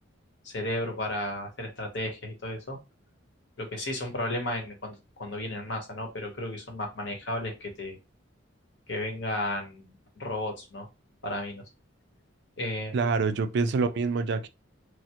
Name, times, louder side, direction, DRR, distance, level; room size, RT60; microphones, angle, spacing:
voice 1, 0.4-2.8 3.6-8.0 8.9-10.9 11.2-11.6 12.6-13.1, left 1 dB, 60° left, 0.9 m, -34 dB
voice 2, 12.9-14.5, right 4 dB, 55° right, 0.3 m, -26 dB
3.2 x 2.1 x 2.8 m
head